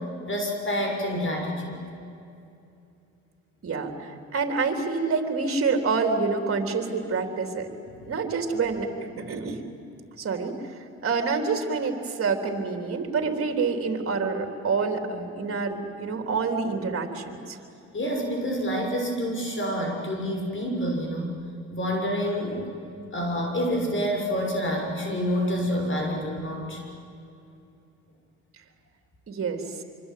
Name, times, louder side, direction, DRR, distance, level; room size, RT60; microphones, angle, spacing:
voice 1, 0.3-1.8 17.9-21.3 21.7-22.7 23.1-26.8, equal, 40° left, 2 dB, 6.7 m, -28 dB
voice 2, 3.6-7.7 8.1-9.6 10.2-17.6 29.3-29.6, right 4 dB, 45° right, 5 dB, 3.7 m, -27 dB
25.5 x 25.0 x 9.5 m, 2.7 s
cardioid pair, 90°, 30 cm